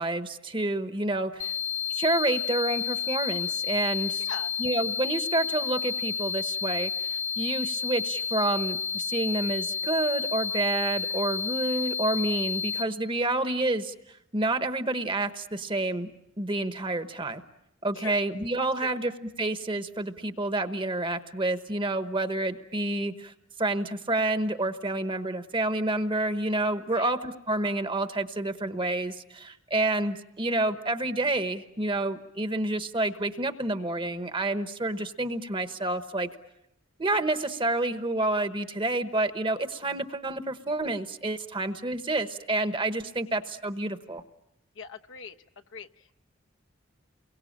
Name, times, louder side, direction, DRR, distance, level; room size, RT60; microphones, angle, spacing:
voice 1, 0.0-1.5 1.9-4.3 4.6-13.9 14.3-16.1 16.4-17.4 17.8-23.3 23.6-36.3 37.0-44.2, right 2 dB, 25° right, 9 dB, 1.2 m, -29 dB
sound 1, 1.4-12.8, left 7 dB, 90° left, 2.0 m, -31 dB
voice 2, 44.8-45.3 45.7-45.9, left 5 dB, 65° left, 5 dB, 1.0 m, -40 dB
29.5 x 23.0 x 8.7 m, 0.84 s
head